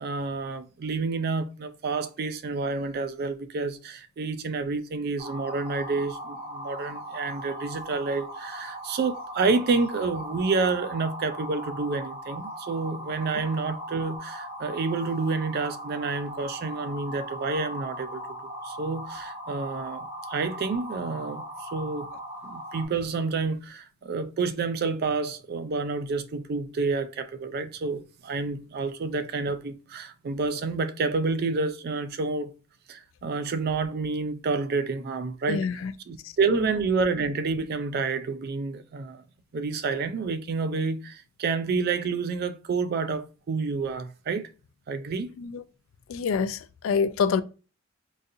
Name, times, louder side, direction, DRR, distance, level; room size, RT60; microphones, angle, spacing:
voice 1, 0.0-18.2 18.6-21.4 21.7-22.1 22.4-32.5 32.9-35.7 36.1-39.2 39.5-44.5 44.9-45.4, right 4 dB, 50° right, 0.3 m, -29 dB
sound 1, 5.2-22.9, equal, 25° right, 1.0 m, -38 dB
voice 2, 35.5-35.9 36.2-36.7 45.4-45.6 46.1-47.4, left 5 dB, 70° left, 0.3 m, -27 dB
3.9 x 2.4 x 2.6 m
head